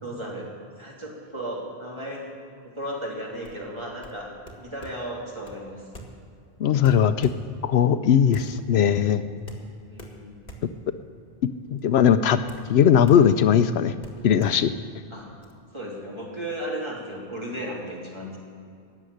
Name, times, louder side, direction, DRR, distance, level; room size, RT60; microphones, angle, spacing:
voice 1, 0.0-0.5 0.8-2.4 2.6-4.3 4.6-5.9 9.8-10.4 15.1-15.3 15.7-18.4, right 1 dB, 25° right, -4 dB, 2.9 m, -35 dB
sound 1, 3.3-15.5, right 1 dB, 45° left, 1.7 m, -46 dB
voice 2, 6.6-7.3 7.6-9.2 11.7-12.4 12.7-13.9 14.2-14.7, left 8 dB, 75° left, 11 dB, 0.8 m, -19 dB
14.0 x 7.3 x 9.9 m, 2.3 s
omnidirectional pair, 1.1 m